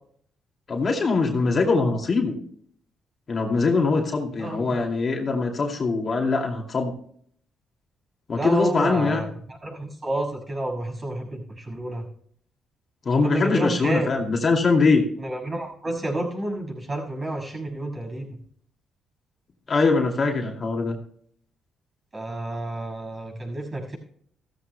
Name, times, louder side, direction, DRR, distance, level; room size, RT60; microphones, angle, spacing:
voice 1, 0.7-2.3 3.3-6.9 8.3-9.2 13.1-15.0 19.7-21.0, left 4 dB, 40° left, 2 dB, 2.4 m, -22 dB
voice 2, 4.4-4.8 8.3-12.1 13.2-14.1 15.2-18.4 22.1-24.0, right 1 dB, 30° right, 0 dB, 6.0 m, -30 dB
15.5 x 14.0 x 2.2 m, 0.62 s
cardioid pair, 90°, 0 cm